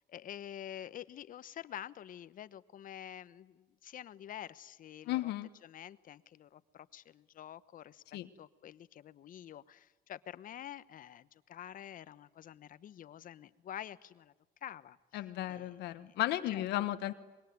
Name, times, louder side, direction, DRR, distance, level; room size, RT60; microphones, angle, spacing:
voice 1, 0.0-5.3 5.6-14.3 14.6-15.0 15.5-15.7 16.0-16.1 16.5-16.6, left 10 dB, 55° left, 15 dB, 1.1 m, -48 dB
voice 2, 5.1-5.5 8.1-8.3 15.1-17.1, left 15 dB, 80° left, 10 dB, 1.3 m, -34 dB
25.5 x 22.5 x 9.5 m, 1.2 s
cardioid pair, 110°, 17 cm